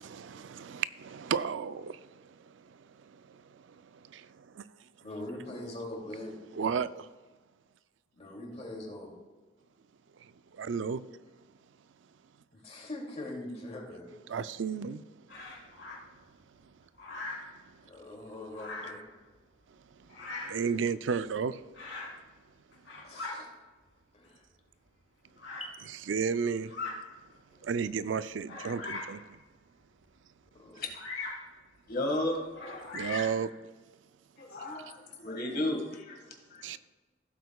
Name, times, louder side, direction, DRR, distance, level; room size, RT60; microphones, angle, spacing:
voice 1, 0.0-2.0 4.1-4.3 4.6-4.7 6.5-7.0 10.6-11.0 14.3-15.0 20.5-21.6 26.1-26.7 27.6-29.2 32.9-33.5 36.6-36.8, right 6 dB, 75° right, 0.4 m, -32 dB
voice 2, 5.0-6.3 8.1-9.1 12.5-14.1 17.9-19.0 23.0-23.5 24.1-24.4 25.6-25.7 30.5-30.8, left 1 dB, 35° left, 2.6 m, -42 dB
Bird vocalization bird call bird song, 15.3-16.0 17.0-17.5 18.5-19.1 20.1-20.6 21.7-22.2 22.7-23.4 24.2-24.3 25.4-25.7 26.6-27.0 27.6-27.7 28.5-29.2 30.9-31.5 32.5-33.4, left 3 dB, 75° left, 3.3 m, -40 dB
voice 3, 31.9-33.1 34.4-36.8, left 1 dB, 55° left, 1.9 m, -35 dB
15.5 x 8.1 x 2.3 m
head